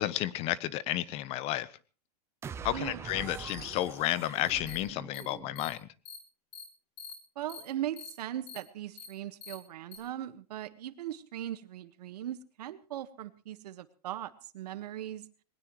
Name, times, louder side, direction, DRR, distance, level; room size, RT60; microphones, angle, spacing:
voice 1, 0.0-1.7 2.6-5.9, left 14 dB, 30° left, 18 dB, 0.9 m, -32 dB
sound 1, 2.4-5.8, right 7 dB, 10° right, 0.7 m, -44 dB
sound 2, 4.7-4.8 5.1-5.2 5.6-5.7 6.1-6.2 6.5-6.6 7.0-7.1 7.5-7.6 8.0-8.1 8.5-8.6 9.0-9.1 9.4-9.5 9.9-10.0, left 5 dB, 80° left, 7.9 m, -44 dB
voice 2, 7.3-15.3, right 12 dB, 70° right, 12 dB, 1.5 m, -39 dB
21.0 x 19.5 x 3.2 m, 0.36 s
supercardioid pair, 155°, 21 cm